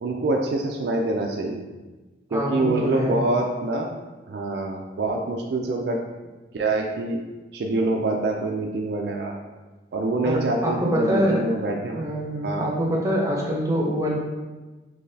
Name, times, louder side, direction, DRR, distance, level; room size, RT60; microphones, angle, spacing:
voice 1, 0.0-1.6 2.3-4.0 4.3-6.0 6.5-7.2 7.5-9.3 9.9-12.0 12.4-12.7, right 2 dB, 60° right, 1 dB, 0.3 m, -25 dB
voice 2, 2.3-3.2 10.2-11.5 11.9-14.1, equal, 15° right, -3 dB, 0.6 m, -25 dB
3.8 x 3.0 x 2.7 m, 1.2 s
head